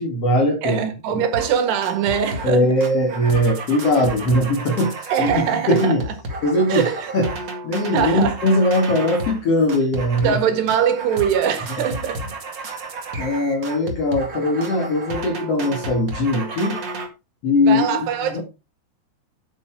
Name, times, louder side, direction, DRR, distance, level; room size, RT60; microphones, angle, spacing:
voice 1, 0.0-0.8 1.1-1.2 2.4-6.0 6.4-6.9 7.1-7.3 7.6-10.4 13.2-16.8 17.4-18.4, left 1 dB, 50° left, 2.2 m, -20 dB
voice 2, 0.6-2.7 5.1-6.0 6.7-7.1 7.9-8.4 10.2-12.4 17.6-18.4, right 8 dB, 85° right, 3.7 m, -22 dB
sound 1, 1.3-1.5 1.8-2.6 2.8-9.4 9.7-10.4 10.7-17.1, right 2 dB, 40° right, 1.7 m, -32 dB
8.6 x 8.4 x 4.5 m
omnidirectional pair, 4.7 m